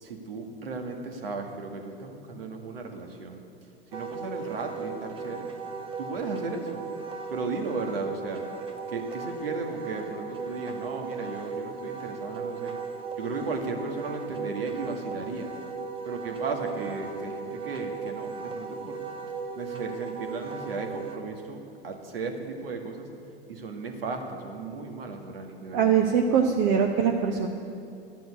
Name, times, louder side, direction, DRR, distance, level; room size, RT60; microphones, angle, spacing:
voice 1, 0.0-3.4 3.9-5.5 6.0-6.8 7.3-8.4 8.9-12.8 13.2-15.5 16.1-19.0 19.5-23.1 23.5-26.2, right 3 dB, 65° right, 4 dB, 1.7 m, -35 dB
Wind instrument woodwind instrument, 3.9-21.2, right 5 dB, 15° right, 1.1 m, -36 dB
voice 2, 25.7-27.5, right 7 dB, 45° right, 2 dB, 0.9 m, -22 dB
12.0 x 7.7 x 8.7 m, 2.5 s
figure-of-eight pair, 90°, 31 cm